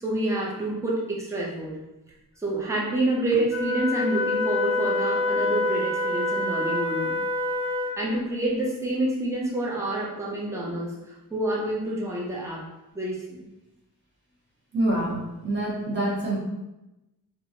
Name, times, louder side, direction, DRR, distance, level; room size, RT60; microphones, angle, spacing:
voice 1, 0.0-1.8 2.4-7.2 8.0-12.7 12.9-13.4, right 1 dB, 10° right, -4 dB, 0.5 m, -28 dB
Wind instrument woodwind instrument, 3.5-8.1, left 2 dB, 15° left, 1.1 m, -26 dB
voice 2, 14.7-16.4, right 1 dB, 30° right, -6 dB, 1.0 m, -26 dB
2.8 x 2.5 x 2.7 m, 0.96 s
wide cardioid pair, 170°, 36 cm